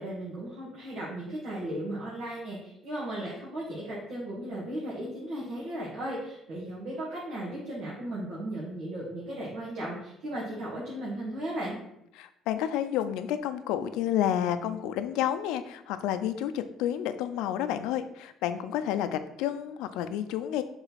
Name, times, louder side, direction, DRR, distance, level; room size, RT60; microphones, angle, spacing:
voice 1, 0.0-11.8, right 1 dB, 60° right, -7 dB, 2.0 m, -36 dB
voice 2, 12.2-20.6, left 10 dB, 90° left, 10 dB, 0.5 m, -30 dB
6.9 x 4.0 x 4.2 m, 0.79 s
cardioid pair, 145°, 0 cm